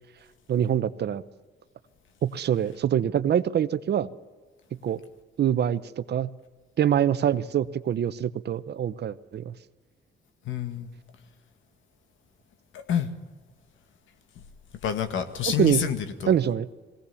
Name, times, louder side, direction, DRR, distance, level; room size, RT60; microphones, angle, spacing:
voice 1, 0.5-1.2 2.2-4.1 4.8-5.0 5.4-5.8 6.1-6.3 6.8-9.5 15.6-15.8 16.3-16.7, right 9 dB, 55° right, 14 dB, 0.9 m, -24 dB
voice 2, 10.5-10.9 12.7-13.1 14.8-16.3, left 8 dB, 75° left, 8 dB, 1.9 m, -28 dB
21.5 x 17.5 x 7.1 m, 1.3 s
cardioid pair, 90°, 20 cm